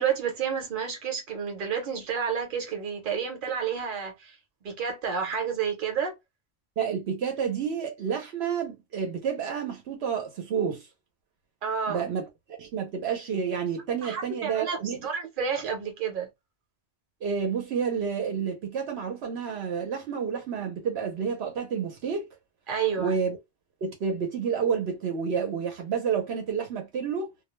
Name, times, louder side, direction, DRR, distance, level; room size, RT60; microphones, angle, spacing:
voice 1, 0.0-4.4 4.6-6.1 11.6-12.1 14.0-16.3 22.7-23.2, right 7 dB, 55° right, 1.0 m, -30 dB
voice 2, 6.8-10.9 11.9-12.3 12.6-15.0 17.2-22.3 23.0-23.4 23.8-27.3, right 6 dB, 80° right, 1.0 m, -29 dB
2.3 x 2.1 x 3.0 m
omnidirectional pair, 1.1 m